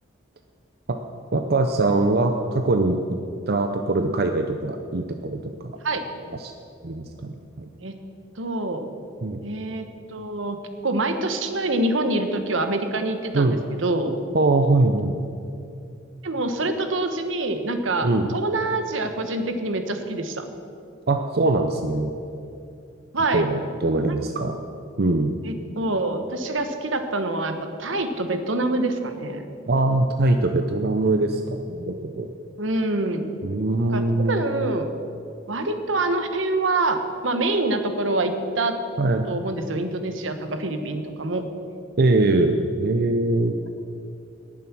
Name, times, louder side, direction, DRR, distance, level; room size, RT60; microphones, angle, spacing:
voice 1, 1.3-3.2 3.5-5.8 6.4-6.5 6.8-7.7 9.2-9.4 13.3-13.6 14.3-15.2 18.0-18.3 21.1-22.1 23.3-24.6 25.0-25.3 29.7-32.3 33.4-34.4 39.0-39.3 42.0-43.5, right 2 dB, 55° right, 5 dB, 0.7 m, -22 dB
voice 2, 8.3-8.9 9.4-14.1 16.2-20.4 23.1-23.5 24.1-24.2 25.4-29.4 32.6-33.3 33.9-34.9 35.5-38.8 39.3-41.4, right 2 dB, 80° right, 7 dB, 1.2 m, -26 dB
18.5 x 7.4 x 6.1 m, 2.6 s
head